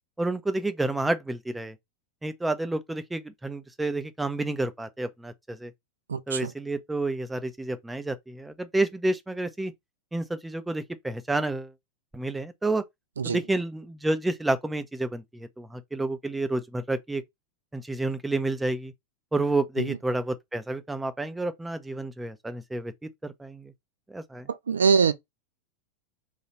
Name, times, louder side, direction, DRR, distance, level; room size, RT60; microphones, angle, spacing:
voice 1, 0.2-1.8 2.2-5.7 6.3-9.7 10.1-11.7 12.1-12.8 13.2-17.2 17.7-18.9 19.3-23.7 24.1-24.5, right 2 dB, 5° right, 0.4 m, -30 dB
voice 2, 6.1-6.5 13.2-13.4 19.8-19.9 24.5-25.1, right 5 dB, 70° right, 0.3 m, -23 dB
3.1 x 2.3 x 3.0 m
figure-of-eight pair, 90°, 0 cm